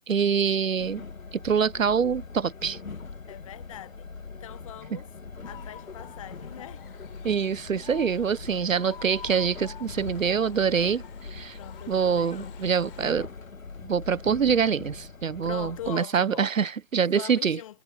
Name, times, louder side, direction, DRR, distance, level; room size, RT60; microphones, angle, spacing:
voice 1, 0.1-1.0 1.3-2.8 4.9-5.0 7.2-11.6 11.9-13.3 13.8-17.6, right 6 dB, 70° right, 0.9 m, -25 dB
Train, 0.8-16.0, left 4 dB, 75° left, 2.2 m, -42 dB
voice 2, 3.3-5.1 5.4-6.9 11.5-12.6 15.4-16.5 17.1-17.8, left 12 dB, 25° left, 1.1 m, -42 dB
sound 1, 5.4-13.1, left 9 dB, 40° left, 4.0 m, -49 dB
figure-of-eight pair, 140°, 41 cm